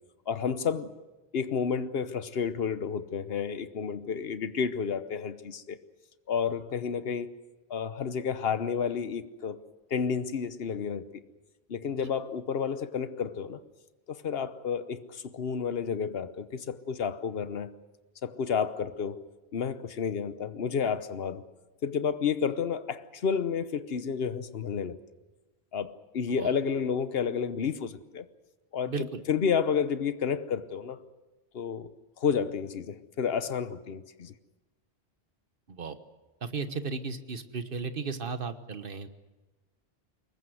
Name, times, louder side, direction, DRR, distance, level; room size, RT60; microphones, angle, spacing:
voice 1, 0.3-1.0 1.3-5.8 6.3-7.3 7.7-9.6 9.9-11.2 11.7-13.6 14.1-17.7 18.2-19.2 19.5-21.4 21.8-25.0 25.7-28.3 28.7-31.0 31.5-34.3, left 6 dB, 70° left, 13 dB, 1.2 m, -31 dB
voice 2, 28.9-29.2 35.7-36.0 36.4-39.1, right 4 dB, 60° right, 10 dB, 1.4 m, -35 dB
23.5 x 20.0 x 7.9 m, 1.2 s
omnidirectional pair, 1.1 m